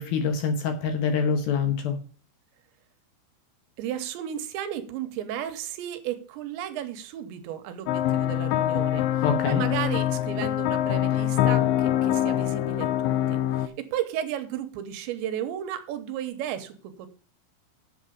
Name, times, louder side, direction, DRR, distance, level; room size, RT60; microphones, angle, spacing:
voice 1, 0.0-2.0 9.2-9.6, left 5 dB, 70° left, 6 dB, 2.5 m, -25 dB
voice 2, 3.8-17.1, right 10 dB, 80° right, 9 dB, 3.2 m, -34 dB
sound 1, 7.9-13.7, left 12 dB, 85° left, 3.1 m, -24 dB
8.4 x 7.5 x 5.3 m, 0.40 s
omnidirectional pair, 5.3 m